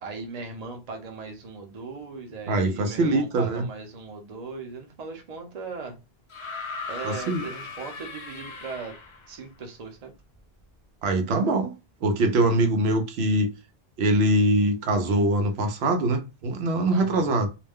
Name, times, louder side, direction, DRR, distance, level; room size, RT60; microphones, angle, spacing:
voice 1, 0.0-6.0 6.9-9.0 9.3-10.1 16.9-17.3, right 4 dB, 45° right, 0.7 m, -38 dB
voice 2, 2.5-3.6 7.0-7.5 11.0-11.7 12.0-13.5 14.0-17.5, right 1 dB, 85° right, 0.9 m, -23 dB
sound 1, 6.3-9.4 10.6-10.7, left 4 dB, 50° left, 0.3 m, -38 dB
2.4 x 2.1 x 3.4 m
omnidirectional pair, 1.0 m